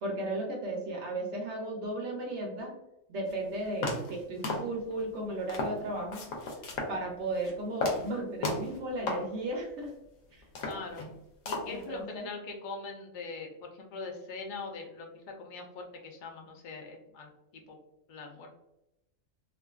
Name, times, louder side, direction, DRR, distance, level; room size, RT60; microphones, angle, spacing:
voice 1, 0.0-2.7 3.1-6.2 6.9-9.9 10.3-10.4 11.7-12.3, right 2 dB, 70° right, 0 dB, 0.8 m, -35 dB
sound 1, 3.3-3.4 3.8-4.2 4.4-5.0 5.5-5.8 6.1-7.0 7.3-7.5 7.8-8.1 8.4-8.8 9.1-9.3 9.8-9.9 10.4-11.2 11.5-11.8, left 2 dB, 90° left, 1.0 m, -34 dB
voice 2, 10.6-11.1 11.5-17.8 18.1-18.5, left 4 dB, 65° left, 1 dB, 0.5 m, -42 dB
2.5 x 2.4 x 2.3 m, 0.88 s
omnidirectional pair, 1.3 m